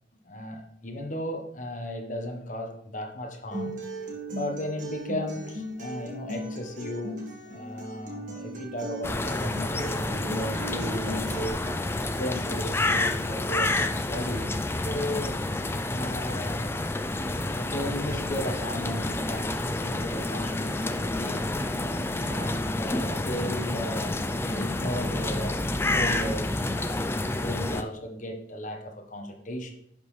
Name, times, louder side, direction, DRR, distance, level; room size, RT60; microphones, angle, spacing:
voice 1, 0.3-3.8 4.3-7.2 7.4-11.3 11.9-15.4 15.8-16.6 17.2-21.5 22.2-24.2 24.4-29.7, equal, 40° left, 3 dB, 1.1 m, -35 dB
Acoustic guitar, 3.5-11.5, right 1 dB, 40° right, 1.6 m, -37 dB
sound 1, 9.0-27.8, left 2 dB, 15° left, 0.4 m, -29 dB
11.0 x 5.2 x 3.2 m, 0.72 s
head